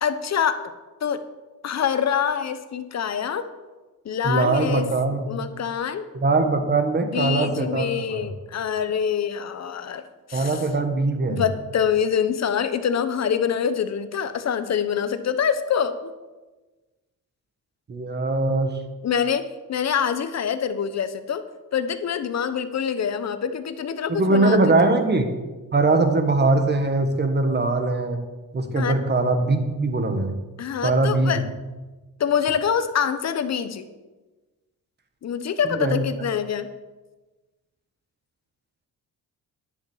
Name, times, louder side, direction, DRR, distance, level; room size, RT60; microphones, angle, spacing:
voice 1, 0.0-0.7 1.0-1.2 1.6-3.5 4.0-4.9 5.3-6.0 7.0-10.6 11.3-16.0 19.0-21.4 21.7-24.7 28.7-29.0 30.6-31.4 32.2-33.9 35.2-36.7, left 7 dB, 50° left, 11 dB, 1.0 m, -25 dB
voice 2, 4.2-5.2 6.1-8.2 10.3-11.4 17.9-18.8 24.1-25.3 25.7-28.2 28.5-30.3 30.8-31.3 35.6-36.0, right 3 dB, 30° right, 6 dB, 1.5 m, -21 dB
11.0 x 7.0 x 7.3 m, 1.2 s
cardioid pair, 120°, 34 cm